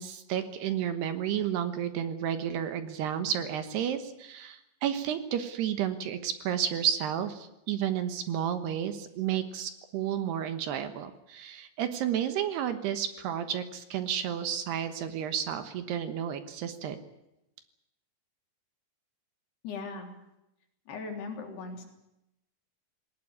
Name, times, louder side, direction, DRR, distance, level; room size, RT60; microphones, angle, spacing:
voice 1, 0.0-17.0, right 9 dB, 70° right, 10 dB, 3.1 m, -31 dB
voice 2, 19.6-20.1 20.9-21.8, left 4 dB, 60° left, 3 dB, 5.3 m, -38 dB
19.5 x 19.0 x 9.6 m, 0.87 s
omnidirectional pair, 5.3 m